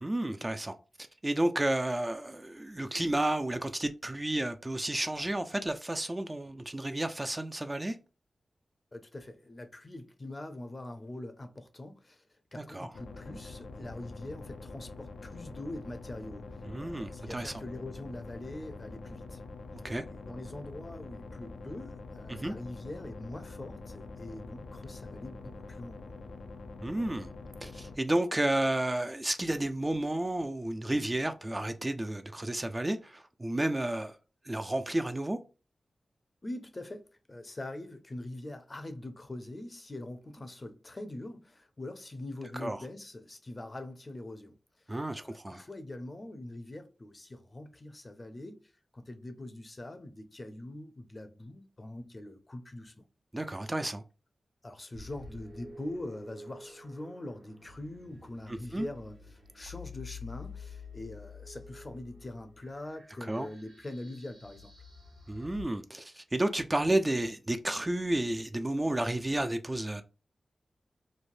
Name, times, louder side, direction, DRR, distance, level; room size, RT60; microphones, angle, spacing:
voice 1, 0.0-0.7 1.2-8.0 12.6-12.9 16.7-17.5 19.8-20.0 22.3-22.6 26.8-27.3 27.6-34.1 34.4-35.4 42.5-42.8 44.9-45.6 53.3-54.0 58.5-58.9 63.3-63.5 65.3-70.0, right 1 dB, 25° right, 0.3 m, -31 dB
voice 2, 8.9-12.2 12.5-16.4 16.8-19.4 20.1-26.0 36.4-37.0 37.3-44.5 44.9-48.6 48.9-53.0 54.6-64.7, left 1 dB, 35° left, 0.6 m, -43 dB
sound 1, 12.9-28.0, left 3 dB, 85° left, 0.4 m, -45 dB
sound 2, 54.9-65.6, left 4 dB, 75° right, 0.9 m, -49 dB
3.2 x 2.1 x 2.5 m
cardioid pair, 50°, 0 cm